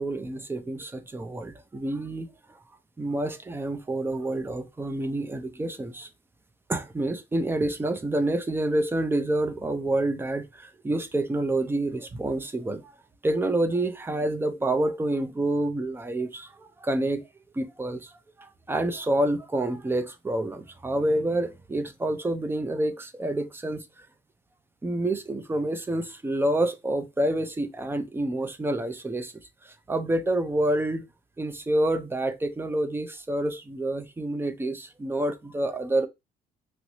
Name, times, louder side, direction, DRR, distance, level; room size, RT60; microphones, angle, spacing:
voice 1, 0.0-2.3 3.0-6.1 6.7-12.9 13.2-17.2 17.5-18.1 18.4-24.1 24.8-29.3 29.6-31.0 31.4-36.1, right 1 dB, 15° right, 0.5 m, -28 dB
2.9 x 2.6 x 3.0 m
cardioid pair, 110°, 17 cm